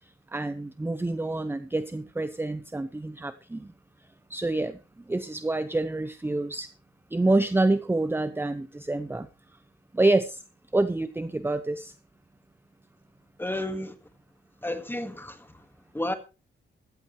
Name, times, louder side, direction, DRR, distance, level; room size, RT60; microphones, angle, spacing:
voice 1, 0.3-3.7 4.3-4.8 5.1-6.7 7.1-9.3 9.9-10.4 10.7-11.9, right 2 dB, 10° right, 0.7 m, -27 dB
voice 2, 13.4-13.9 14.6-15.6 15.9-16.1, left 1 dB, 10° left, 1.8 m, -32 dB
15.0 x 14.0 x 3.3 m
cardioid pair, 100°, 21 cm